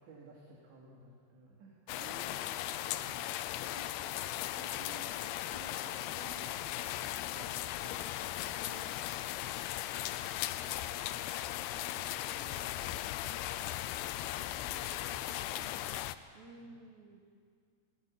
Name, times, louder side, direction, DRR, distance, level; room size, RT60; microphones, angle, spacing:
voice 1, 0.0-3.7 4.1-4.8 6.5-7.6 10.6-11.1 11.7-13.0 13.9-15.9 16.5-16.8, right 2 dB, 85° right, -3 dB, 4.8 m, -58 dB
sound 1, 1.9-16.2, left 14 dB, 80° left, 2.5 m, -38 dB
voice 2, 2.0-2.6 3.6-5.2 5.5-6.6 7.4-9.4 16.3-17.2, right 3 dB, 55° right, 1 dB, 2.2 m, -54 dB
19.5 x 16.0 x 9.4 m, 2.1 s
omnidirectional pair, 5.0 m